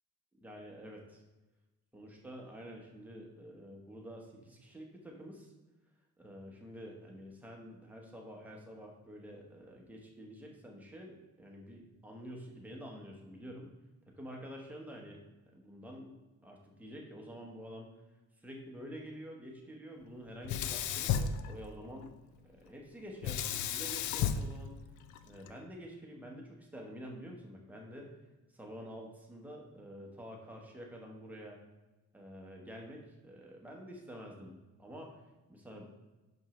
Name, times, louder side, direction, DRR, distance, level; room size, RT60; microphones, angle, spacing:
voice 1, 0.4-1.2 1.9-5.5 6.2-13.7 14.1-15.2 15.5-16.1 16.4-17.9 18.4-22.1 22.4-24.8 25.2-28.1 28.5-31.6 32.1-35.2 35.5-35.9, equal, 5° right, -1 dB, 0.9 m, -48 dB
Sink (filling or washing), 20.4-22.1 23.2-25.5, left 8 dB, 80° left, 0.5 m, -34 dB
6.1 x 5.3 x 3.0 m, 1.1 s
cardioid pair, 150°, 29 cm